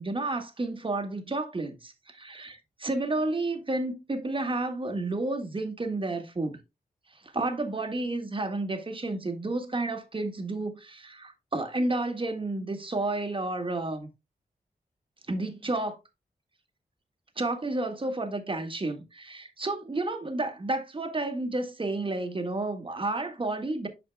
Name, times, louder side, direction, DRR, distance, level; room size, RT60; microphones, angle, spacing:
voice 1, 0.0-6.6 7.2-14.1 15.3-16.0 17.4-23.9, right 2 dB, 35° right, 1.7 m, -31 dB
11.5 x 4.9 x 2.2 m
wide cardioid pair, 85°, 16 cm